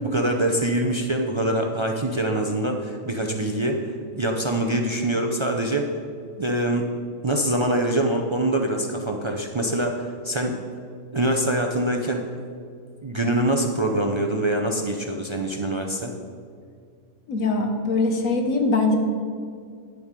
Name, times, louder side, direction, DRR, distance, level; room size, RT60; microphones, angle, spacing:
voice 1, 0.0-5.9 6.4-6.9 7.2-10.6 11.1-12.2 13.0-16.1, right 1 dB, 40° right, 2 dB, 0.4 m, -24 dB
voice 2, 17.3-19.0, left 3 dB, 75° left, 4 dB, 1.5 m, -22 dB
10.0 x 7.7 x 5.2 m, 2.2 s
omnidirectional pair, 1.4 m